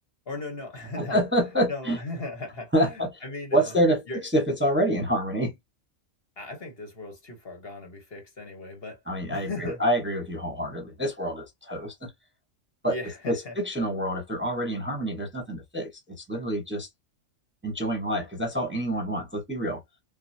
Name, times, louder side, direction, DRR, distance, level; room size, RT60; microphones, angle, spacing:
voice 1, 0.3-1.2 1.7-3.7 4.1-4.2 6.4-9.0 9.3-9.8 12.8-13.6, left 2 dB, 50° left, 1.4 m, -37 dB
voice 2, 1.0-2.0 2.7-3.2 3.5-4.0 4.3-5.5 9.1-12.1 12.8-13.0 13.3-16.9 17.6-19.8, equal, 10° right, 1.0 m, -27 dB
6.4 x 2.2 x 2.7 m
omnidirectional pair, 1.4 m